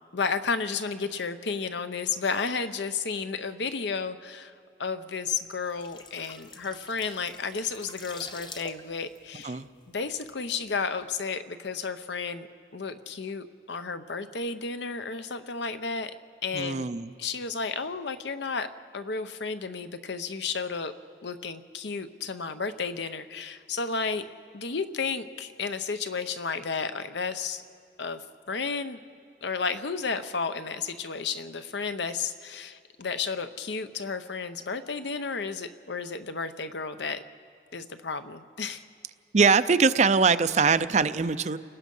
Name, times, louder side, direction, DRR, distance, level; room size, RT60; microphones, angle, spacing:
voice 1, 0.1-4.5 4.8-9.6 9.9-12.5 12.7-16.1 16.4-16.9 17.2-18.7 18.9-20.9 21.2-24.2 24.5-27.6 28.0-29.0 29.4-37.2 37.7-38.8, left 5 dB, 65° left, 10 dB, 0.8 m, -32 dB
sound 1, 5.5-10.4 10.7-10.9, left 4 dB, 25° left, 0.9 m, -46 dB
voice 2, 16.5-17.1 39.3-41.6, right 5 dB, 35° right, 13 dB, 0.5 m, -22 dB
29.5 x 19.0 x 5.5 m, 2.3 s
head